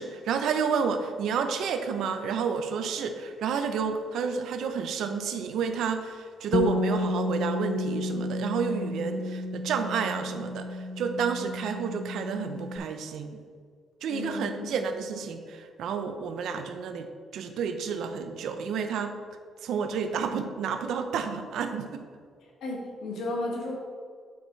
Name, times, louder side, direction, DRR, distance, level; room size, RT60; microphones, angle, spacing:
voice 1, 0.0-13.4 14.0-17.1 17.3-19.1 19.6-22.0, right 6 dB, 70° right, 7 dB, 0.5 m, -30 dB
Bass guitar, 6.5-12.8, left 2 dB, 40° left, 0.3 m, -31 dB
voice 2, 14.1-14.9 22.6-23.8, left 2 dB, 65° left, -2 dB, 1.5 m, -34 dB
8.2 x 5.8 x 3.1 m, 2.1 s
cardioid pair, 170°, 0 cm